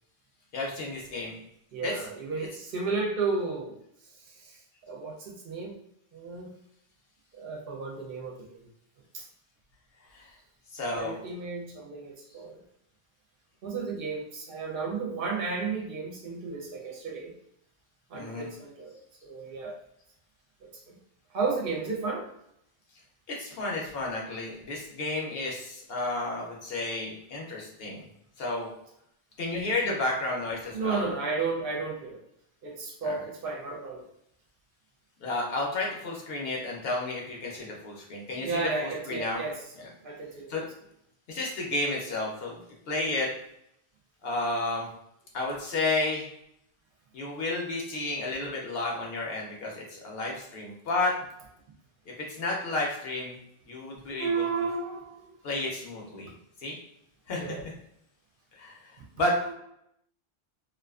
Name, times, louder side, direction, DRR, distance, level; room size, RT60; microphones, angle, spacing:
voice 1, 0.5-1.4 1.8-1.9 10.1-10.2 10.7-11.2 18.1-18.5 23.3-28.0 28.4-28.7 29.4-31.0 33.0-33.2 35.2-39.4 40.5-40.6 41.3-42.6 42.9-43.3 44.2-44.9 45.3-46.3 47.1-51.1 52.1-53.4 53.7-54.5 55.4-56.3 56.6-56.8 57.3-57.5 58.6-58.8 59.1-59.3, left 2 dB, 65° left, -1 dB, 0.8 m, -31 dB
voice 2, 1.7-3.8 4.3-4.6 4.9-5.7 6.1-6.5 7.4-8.6 9.1-9.2 10.9-12.6 13.6-17.3 18.1-19.0 19.2-19.8 20.9-21.0 21.3-22.3 29.8-30.0 30.7-32.2 32.6-34.1 38.4-39.6 40.0-40.6 54.2-55.2 57.3-57.6 59.4-59.5, right 4 dB, 60° right, -1 dB, 0.7 m, -33 dB
2.5 x 2.3 x 2.3 m, 0.76 s
omnidirectional pair, 1.1 m